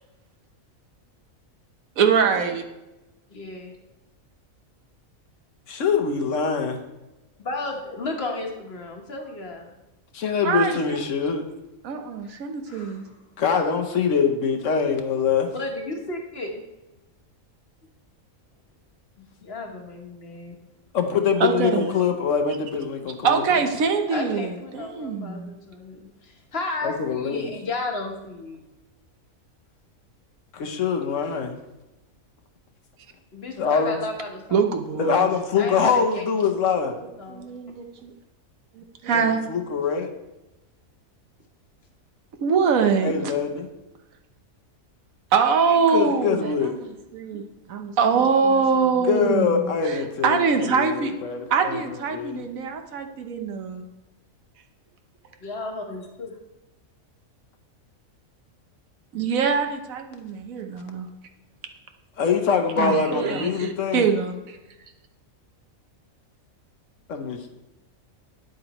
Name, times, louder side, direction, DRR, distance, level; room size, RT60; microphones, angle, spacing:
voice 1, 2.0-2.6 10.4-11.0 11.8-13.0 21.4-21.9 23.2-25.5 34.5-35.3 37.3-38.1 38.7-39.4 42.4-43.3 45.3-46.9 47.1-47.4 47.7-51.1 51.5-53.8 59.1-61.1 62.8-64.6, right 6 dB, 80° right, 6 dB, 1.3 m, -23 dB
voice 2, 3.3-3.7 7.4-9.7 12.3-12.4 12.7-13.2 15.5-16.6 19.4-20.5 24.1-28.6 33.3-35.1 35.6-36.3 36.7-36.8 37.2-37.5 55.4-56.4, left 2 dB, 50° left, 2 dB, 1.4 m, -33 dB
voice 3, 5.7-6.8 10.1-11.4 13.4-15.5 20.9-23.4 26.8-27.5 30.5-31.6 33.6-34.0 35.0-36.9 39.1-40.1 43.0-43.7 45.9-46.8 49.1-51.8 52.1-52.4 62.2-64.1 67.1-67.5, left 6 dB, 65° left, 5 dB, 1.1 m, -24 dB
9.7 x 7.7 x 3.0 m, 1.0 s
omnidirectional pair, 1.4 m